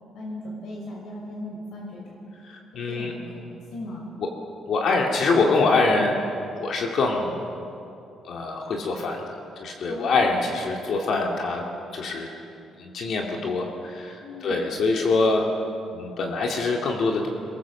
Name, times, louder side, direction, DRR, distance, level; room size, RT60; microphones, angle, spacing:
voice 1, 0.1-2.1 2.7-4.2 9.9-10.2 14.2-14.6, left 1 dB, 75° left, -2 dB, 5.5 m, -37 dB
voice 2, 2.4-3.1 4.7-6.2 6.6-7.4 8.2-9.2 9.6-11.7 11.9-12.3 12.8-15.5 15.9-17.3, left 3 dB, 55° left, 1 dB, 2.3 m, -24 dB
24.0 x 21.0 x 7.2 m, 2.7 s
cardioid pair, 160°, 0 cm